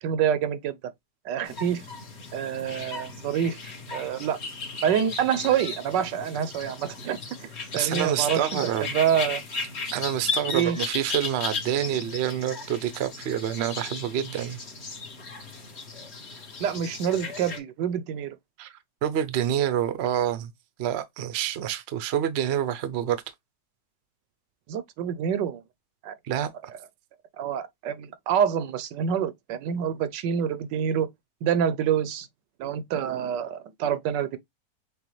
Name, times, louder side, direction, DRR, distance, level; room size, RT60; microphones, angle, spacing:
voice 1, 0.0-0.7 1.2-1.8 2.3-3.6 3.9-4.4 4.8-7.5 7.7-8.5 8.9-9.4 10.5-10.8 16.6-18.3 24.7-25.6 26.0-26.1 27.4-31.1 31.4-32.3 32.6-34.4, right 8 dB, 85° right, 1.3 m, -26 dB
sound 1, 1.4-17.6, left 4 dB, 45° left, 1.3 m, -36 dB
voice 2, 7.7-8.9 9.9-14.6 18.6-20.5 20.8-23.2 26.2-26.5, right 10 dB, 60° right, 0.6 m, -27 dB
6.5 x 2.3 x 3.1 m
omnidirectional pair, 1.9 m